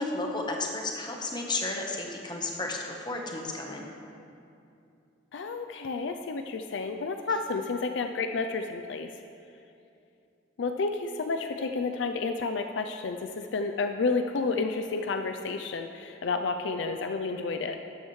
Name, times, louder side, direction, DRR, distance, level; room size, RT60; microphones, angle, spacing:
voice 1, 0.0-3.9, left 2 dB, 25° left, 0 dB, 1.0 m, -33 dB
voice 2, 5.3-9.1 10.6-17.8, left 4 dB, 65° left, 6 dB, 0.4 m, -31 dB
13.0 x 8.9 x 3.2 m, 2.6 s
head